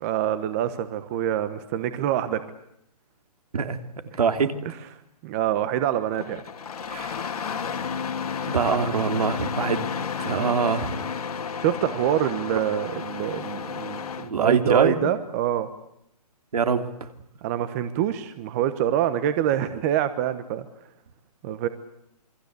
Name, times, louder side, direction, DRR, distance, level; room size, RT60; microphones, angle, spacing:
voice 1, 0.0-2.4 5.2-6.4 10.2-10.5 11.6-15.7 17.4-20.6 21.4-21.7, right 11 dB, 25° right, 11 dB, 1.2 m, -25 dB
voice 2, 3.5-4.5 6.9-7.2 8.5-9.9 10.2-11.0 14.2-15.0 16.5-17.1, right 5 dB, 70° right, 7 dB, 3.1 m, -24 dB
Engine starting, 6.2-14.3, left 6 dB, 65° left, 2.6 m, -32 dB
28.0 x 23.0 x 8.2 m, 0.77 s
hypercardioid pair, 160°, 20 cm